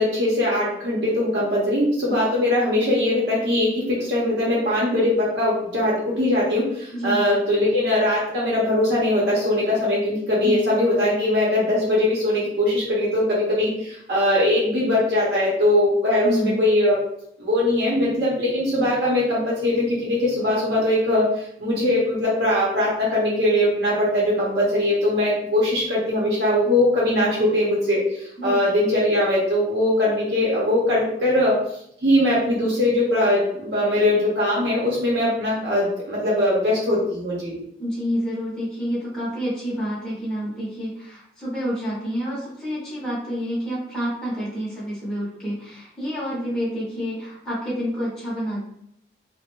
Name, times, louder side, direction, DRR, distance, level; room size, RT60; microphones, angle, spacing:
voice 1, 0.0-17.0 17.4-31.6 32.0-37.6, left 1 dB, 70° right, -6 dB, 0.8 m, -21 dB
voice 2, 6.9-7.2 10.4-10.7 16.2-16.6 28.4-28.6 37.8-48.6, equal, 5° left, -9 dB, 0.6 m, -28 dB
2.4 x 2.1 x 2.9 m, 0.72 s
head